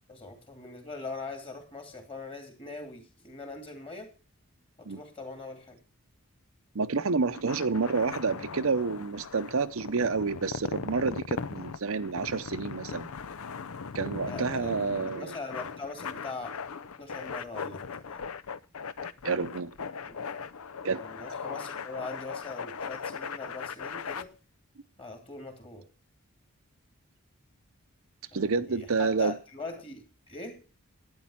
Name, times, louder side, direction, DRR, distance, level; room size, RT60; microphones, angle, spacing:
voice 1, 0.1-4.2 4.8-5.8 14.3-16.6 17.0-18.3 20.1-20.2 20.9-24.3 25.0-25.9 28.3-30.6, left 3 dB, 25° left, 2.8 m, -42 dB
voice 2, 6.7-13.1 13.9-15.3 19.2-19.7 20.8-21.0 28.3-29.3, right 4 dB, 70° right, 0.7 m, -29 dB
sound 1, 7.2-24.2, left 5 dB, 75° left, 0.6 m, -39 dB
12.0 x 9.6 x 5.8 m
head